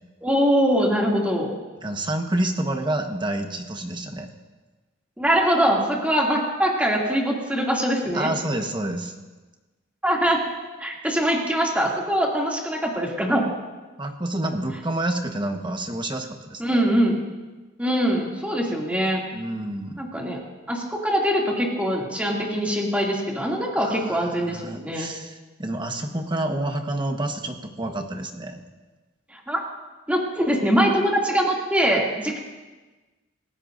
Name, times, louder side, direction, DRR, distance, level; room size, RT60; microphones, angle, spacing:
voice 1, 0.2-1.5 5.2-8.3 10.0-10.4 10.8-13.5 16.6-17.2 17.8-19.2 20.0-20.4 20.7-25.1 29.3-29.6 30.1-32.4, equal, 5° right, -2 dB, 2.5 m, -23 dB
voice 2, 1.8-4.3 8.1-9.1 14.0-16.8 19.3-20.0 23.8-28.6, right 1 dB, 25° right, 4 dB, 1.2 m, -28 dB
28.5 x 15.5 x 2.6 m, 1.2 s
head